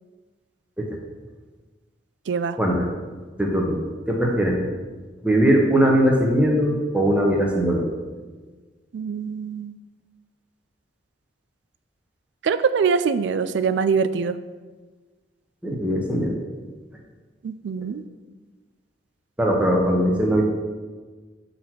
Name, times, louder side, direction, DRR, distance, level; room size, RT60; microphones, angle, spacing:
voice 1, 2.3-2.6 8.9-9.7 12.4-14.4 17.4-18.0, right 5 dB, 65° right, 13 dB, 0.3 m, -23 dB
voice 2, 3.4-3.8 4.1-4.6 5.2-7.9 15.6-16.3 19.4-20.4, equal, 5° right, -1 dB, 0.8 m, -20 dB
7.4 x 4.1 x 4.4 m, 1.4 s
head